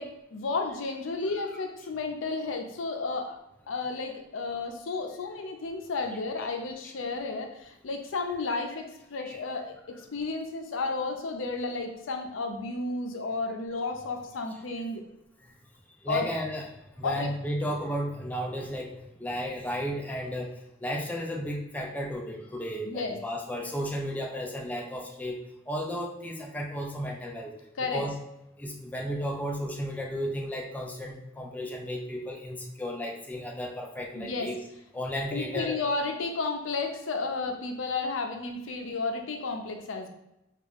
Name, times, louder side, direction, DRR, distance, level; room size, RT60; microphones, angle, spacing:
voice 1, 0.0-3.4 3.7-8.8 9.1-9.7 10.1-15.0 16.1-16.3 17.0-17.3 22.9-23.2 27.8-28.1 34.1-34.5 35.3-40.1, left 3 dB, 80° left, 4 dB, 0.5 m, -32 dB
voice 2, 16.0-16.7 17.0-25.4 25.7-27.5 27.8-28.1 28.6-34.6 34.9-35.8, equal, 10° left, -1 dB, 0.3 m, -34 dB
3.5 x 2.4 x 3.4 m, 0.87 s
head